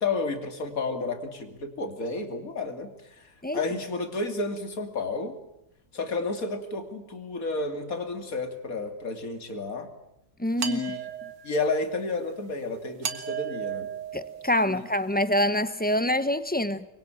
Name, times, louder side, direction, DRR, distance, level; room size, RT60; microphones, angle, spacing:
voice 1, 0.0-2.9 3.2-5.4 5.9-9.9 10.6-11.0 11.4-13.9 14.7-14.8, left 3 dB, 50° left, 3.1 m, -31 dB
voice 2, 10.4-10.9 14.1-16.8, left 1 dB, 10° left, 0.5 m, -26 dB
sound 1, 10.6-11.7 13.0-14.9, right 8 dB, 90° right, 2.4 m, -35 dB
25.0 x 23.5 x 9.0 m
omnidirectional pair, 1.9 m